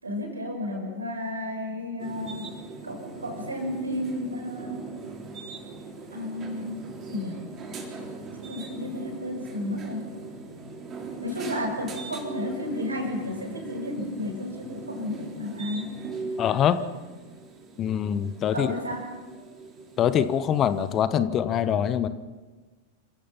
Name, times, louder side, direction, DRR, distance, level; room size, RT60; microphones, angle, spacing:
voice 1, 0.0-2.6 2.8-4.9 6.1-7.4 8.4-10.0 11.2-15.9 18.5-19.1, left 1 dB, 80° right, 3 dB, 5.7 m, -32 dB
sound 1, 2.0-21.0, right 3 dB, 30° right, 3.8 m, -40 dB
voice 2, 16.4-16.8 17.8-18.7 20.0-22.1, left 9 dB, 30° left, 13 dB, 1.1 m, -24 dB
28.5 x 16.0 x 5.7 m, 1.3 s
figure-of-eight pair, 90°, 0 cm